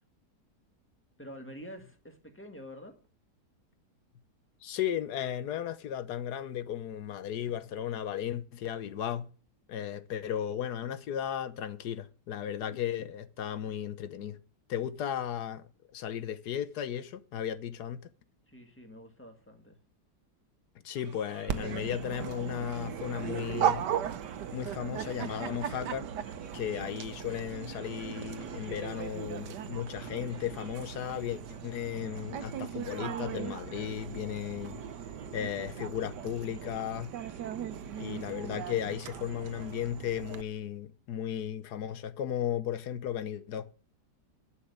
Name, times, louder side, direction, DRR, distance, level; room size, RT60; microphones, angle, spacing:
voice 1, 1.2-3.0 18.5-19.8, equal, 5° left, 2.0 m, -47 dB
voice 2, 4.6-9.3 9.7-14.4 14.7-15.6 15.9-18.1 20.8-23.9 24.5-26.1 26.5-34.8 35.3-37.1 38.0-43.8, left 10 dB, 75° left, 1.4 m, -35 dB
sound 1, 20.9-39.8, right 5 dB, 50° right, 1.5 m, -57 dB
Dog, 21.5-40.4, right 9 dB, 90° right, 1.4 m, -37 dB
11.5 x 6.3 x 8.0 m
omnidirectional pair, 1.8 m